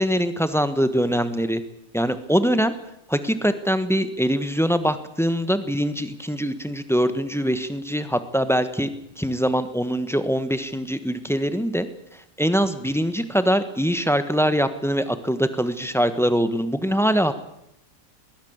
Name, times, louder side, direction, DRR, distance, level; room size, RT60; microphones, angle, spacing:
voice 1, 0.0-1.6 1.9-2.7 3.1-8.9 9.2-11.9 12.4-17.3, equal, ahead, 10 dB, 1.2 m, -23 dB
21.5 x 16.0 x 8.1 m, 0.80 s
omnidirectional pair, 1.6 m